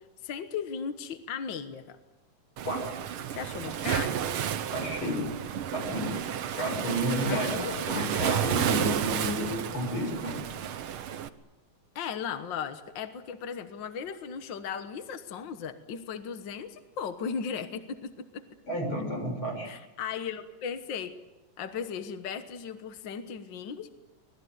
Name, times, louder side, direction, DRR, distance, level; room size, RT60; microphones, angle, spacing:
voice 1, 0.0-2.0 3.3-4.2 7.3-7.9 11.9-18.4 19.6-21.1 21.6-23.9, left 7 dB, 60° left, 9 dB, 1.2 m, -36 dB
Waves surf, 2.6-11.3, right 9 dB, 70° right, 1.3 m, -31 dB
voice 2, 4.7-5.3 5.7-6.1 6.5-7.5 7.9-10.4 18.7-19.7, equal, 35° left, 3 dB, 7.8 m, -31 dB
25.0 x 20.0 x 9.5 m, 1.0 s
omnidirectional pair, 3.9 m